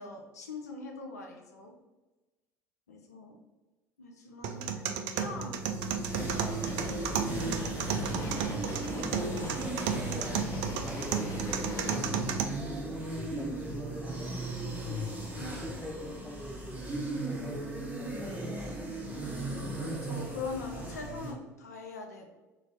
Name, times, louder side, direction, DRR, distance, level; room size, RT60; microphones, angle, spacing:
voice 1, 0.0-1.7 2.9-3.4 4.0-6.5 15.4-15.6 19.8-22.3, left 3 dB, 85° left, 2 dB, 0.5 m, -43 dB
sound 1, 4.4-12.4, right 7 dB, 60° right, 0.4 m, -33 dB
voice 2, 5.2-5.5 9.9-11.5 12.2-14.4 15.5-17.0 17.2-18.5, left 1 dB, 10° left, -2 dB, 0.6 m, -45 dB
sound 2, 5.4-21.3, right 2 dB, 20° right, 1.2 m, -37 dB
sound 3, 6.1-12.0, left 1 dB, 35° left, 1.0 m, -40 dB
2.8 x 2.6 x 4.1 m, 1.2 s
hypercardioid pair, 65°, 8 cm